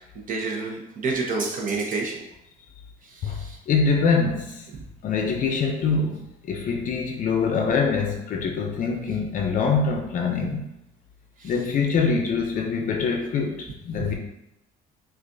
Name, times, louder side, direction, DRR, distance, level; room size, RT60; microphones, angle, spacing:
voice 1, 0.3-2.2 3.1-3.6 11.4-11.5 14.0-14.1, right 3 dB, 50° right, 0.9 m, -29 dB
voice 2, 3.2-4.7 5.0-10.7 11.4-14.1, left 5 dB, 50° left, 0.5 m, -24 dB
6.3 x 2.5 x 2.6 m
cardioid pair, 110°, 17 cm